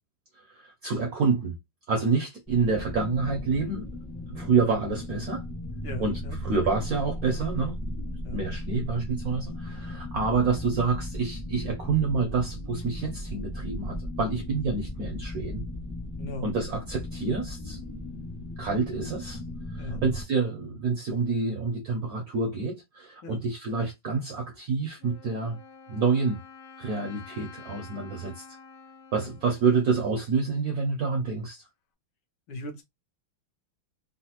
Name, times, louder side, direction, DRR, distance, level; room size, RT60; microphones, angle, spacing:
voice 1, 0.6-1.6 1.9-3.9 4.3-5.4 6.0-7.8 8.3-15.6 16.4-17.8 18.6-19.4 19.7-25.6 25.9-26.4 26.8-28.4 29.1-31.6, right 4 dB, 75° right, 0.8 m, -28 dB
sound 1, 2.5-20.2, left 1 dB, ahead, 0.5 m, -36 dB
voice 2, 5.8-6.4 8.2-8.4 16.2-16.5 19.8-20.0 23.2-23.4 29.2-29.3 32.5-32.8, left 1 dB, 75° left, 1.5 m, -38 dB
Wind instrument woodwind instrument, 25.0-30.7, left 6 dB, 90° left, 1.5 m, -49 dB
3.8 x 2.1 x 2.8 m
omnidirectional pair, 2.3 m